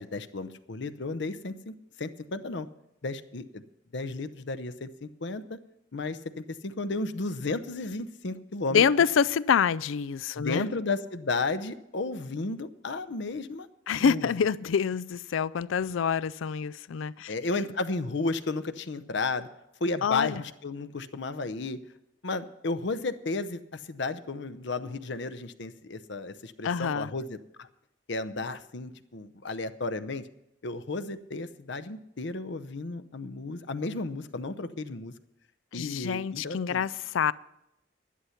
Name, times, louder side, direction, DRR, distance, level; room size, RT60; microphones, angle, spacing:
voice 1, 0.0-2.7 3.0-3.6 3.9-5.6 5.9-8.8 10.4-14.3 17.3-19.5 19.8-21.8 22.2-27.7 28.1-30.2 30.6-35.1 35.7-36.8, left 3 dB, 65° left, 0.7 m, -33 dB
voice 2, 8.7-10.7 13.9-17.3 20.0-20.4 26.6-27.1 35.7-37.3, left 7 dB, 90° left, 0.4 m, -26 dB
11.5 x 11.0 x 5.8 m
head